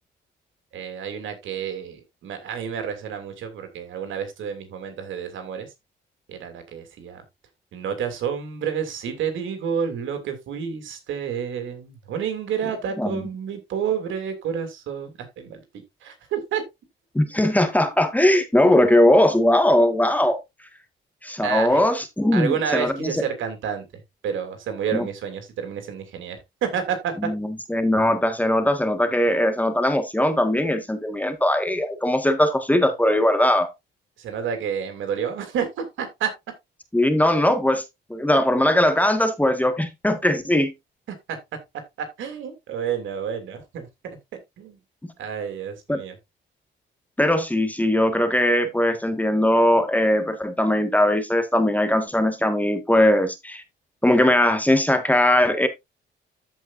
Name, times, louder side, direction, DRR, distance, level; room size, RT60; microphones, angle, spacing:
voice 1, 0.7-5.7 6.3-7.2 7.7-15.6 16.0-16.6 21.4-21.9 22.3-27.1 34.2-36.3 41.3-41.4 42.0-44.8 45.2-46.2, right 7 dB, 80° right, 2.9 m, -30 dB
voice 2, 17.1-20.4 21.2-23.1 24.9-25.1 27.2-33.7 36.9-37.8 38.1-40.7 45.9-46.0 47.2-53.6 54.0-55.7, left 1 dB, 10° left, 1.6 m, -20 dB
14.0 x 5.4 x 2.6 m
cardioid pair, 90°, 20 cm